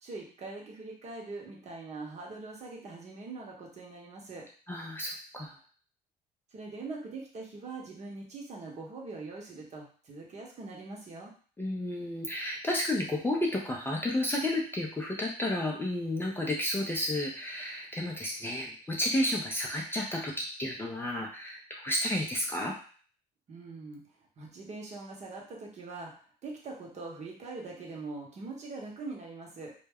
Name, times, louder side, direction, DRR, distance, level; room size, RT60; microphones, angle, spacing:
voice 1, 0.0-4.5 6.5-11.3 23.5-29.7, right 3 dB, 40° right, -1 dB, 0.9 m, -42 dB
voice 2, 4.7-5.6 11.6-22.7, left 1 dB, 15° left, -1 dB, 0.4 m, -32 dB
2.2 x 2.1 x 3.4 m, 0.43 s
cardioid pair, 110°, 17 cm